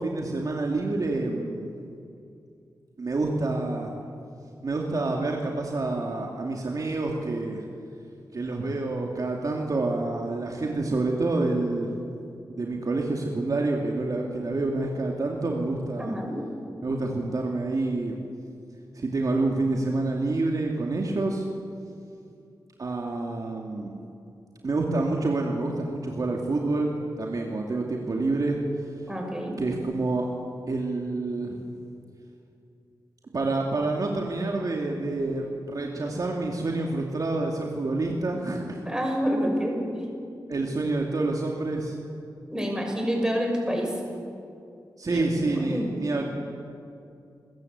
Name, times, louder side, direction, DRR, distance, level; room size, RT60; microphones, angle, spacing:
voice 1, 0.0-1.7 3.0-3.9 4.6-7.6 8.3-12.0 12.5-16.1 16.8-18.2 18.9-21.5 22.8-24.0 24.6-28.6 29.6-30.3 30.7-31.6 33.3-38.8 40.5-42.0 45.0-46.2, right 2 dB, 50° right, 0 dB, 2.5 m, -28 dB
voice 2, 16.0-16.4 29.1-29.6 38.8-40.1 42.5-44.0 45.1-45.9, equal, 10° right, 1 dB, 5.9 m, -28 dB
27.5 x 14.5 x 8.1 m, 2.5 s
wide cardioid pair, 85°, 8 cm